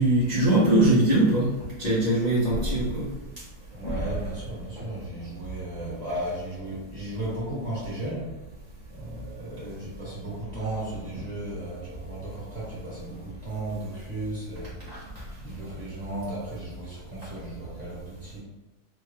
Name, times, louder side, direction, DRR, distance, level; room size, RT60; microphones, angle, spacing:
voice 1, 0.0-1.5 1.8-3.1 3.8-4.0 4.8-4.9 14.8-15.0, right 1 dB, 60° left, -10 dB, 0.4 m, -22 dB
voice 2, 3.7-8.3 8.9-15.1 15.4-18.4, right 1 dB, 25° right, -8 dB, 1.1 m, -35 dB
3.0 x 2.2 x 3.1 m, 1.1 s
omnidirectional pair, 1.8 m